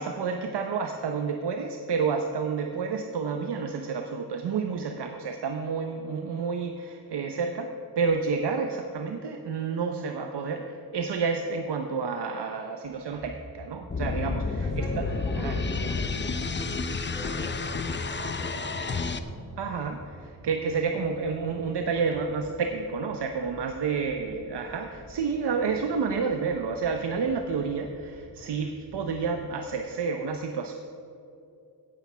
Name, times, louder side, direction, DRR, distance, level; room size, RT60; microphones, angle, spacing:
voice 1, 0.0-7.7 8.0-15.0 15.4-15.6 19.6-30.7, right 5 dB, 90° right, 5 dB, 0.9 m, -30 dB
sound 1, 12.8-29.7, right 1 dB, 25° right, 3.0 m, -50 dB
sound 2, 13.9-19.2, left 4 dB, 30° left, 0.7 m, -30 dB
voice 2, 14.6-19.2, equal, 10° left, -2 dB, 3.0 m, -42 dB
16.5 x 8.3 x 5.6 m, 2.7 s
wide cardioid pair, 115°, 40 cm